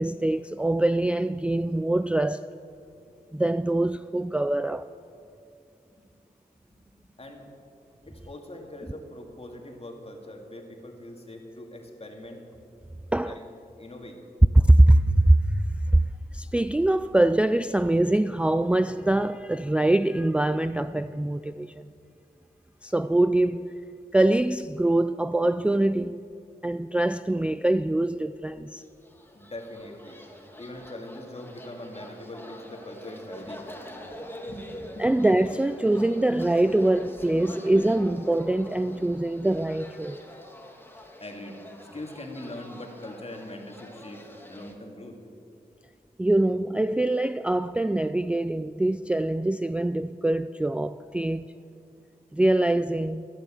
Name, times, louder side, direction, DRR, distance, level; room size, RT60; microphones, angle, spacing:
voice 1, 0.0-2.5 3.3-4.9 13.1-13.4 14.5-16.0 16.3-21.9 22.8-23.7 24.1-26.2 26.6-28.8 35.0-40.2 46.2-51.5 52.3-53.3, right 1 dB, 5° right, 0.3 m, -23 dB
voice 2, 8.0-12.4 13.3-13.4 13.8-14.2 29.3-30.2 30.6-33.6 34.4-34.7 34.9-35.0 41.2-41.6 41.9-44.2 44.5-45.2, left 1 dB, 35° left, 2.5 m, -41 dB
sound 1, 28.9-44.7, equal, 15° left, 2.2 m, -44 dB
14.0 x 12.0 x 7.7 m
cardioid pair, 60°, 17 cm